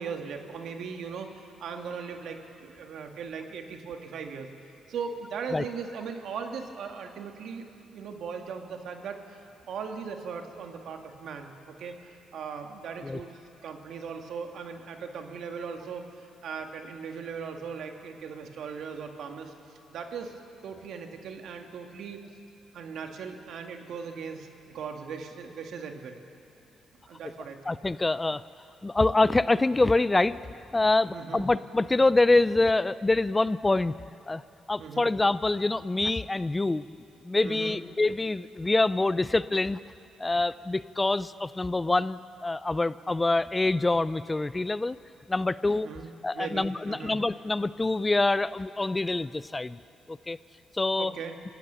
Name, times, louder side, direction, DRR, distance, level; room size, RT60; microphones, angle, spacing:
voice 1, 0.0-4.5 4.9-7.7 7.9-9.4 9.7-20.3 20.6-22.2 22.7-26.2 27.1-27.8 31.1-31.5 34.8-35.1 37.4-37.8 45.8-47.2 51.0-51.4, right 6 dB, 70° right, 4 dB, 2.0 m, -39 dB
voice 2, 27.7-28.4 28.8-33.9 34.3-34.4 34.7-36.8 37.2-39.8 40.2-45.0 45.3-45.9 46.2-49.8 50.1-50.4 50.7-51.1, left 2 dB, 20° left, 16 dB, 0.4 m, -25 dB
26.5 x 15.5 x 6.9 m, 2.7 s
cardioid pair, 90°, 0 cm